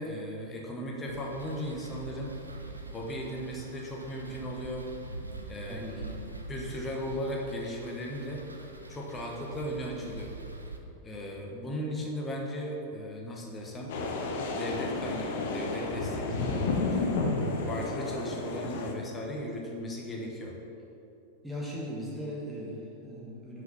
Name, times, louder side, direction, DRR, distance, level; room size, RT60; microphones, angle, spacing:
voice 1, 0.0-2.4 2.9-4.8 5.5-5.8 6.5-8.4 8.9-10.3 11.0-13.9 14.5-17.1 17.7-20.5, equal, 20° left, -1 dB, 1.2 m, -37 dB
sound 1, 1.1-10.8, right 2 dB, 80° right, 0.5 m, -44 dB
voice 2, 5.7-6.2 21.4-23.6, equal, 5° right, -6 dB, 1.3 m, -39 dB
sound 2, 13.9-18.9, left 3 dB, 55° left, 0.7 m, -31 dB
5.9 x 5.1 x 5.5 m, 2.8 s
figure-of-eight pair, 90°, 0 cm